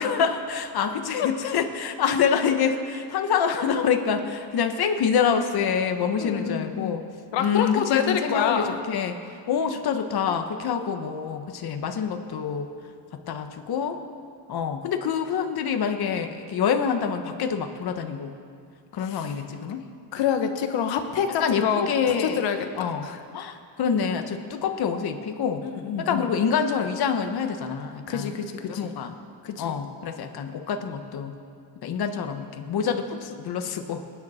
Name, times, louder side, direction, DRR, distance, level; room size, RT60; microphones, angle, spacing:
voice 1, 0.0-7.0 7.4-9.1 9.5-12.7 13.3-14.0 14.5-18.3 18.9-19.8 21.4-22.4 22.8-23.1 23.3-25.6 26.0-28.3 28.8-29.1 29.6-31.3 31.8-34.0, left 7 dB, 55° left, 6 dB, 1.2 m, -26 dB
voice 2, 6.2-8.8 19.0-19.4 20.1-23.2 25.6-26.3 28.1-28.9 29.4-29.8, left 8 dB, 85° left, 6 dB, 1.4 m, -27 dB
26.5 x 9.6 x 4.3 m, 2.4 s
cardioid pair, 120°, 44 cm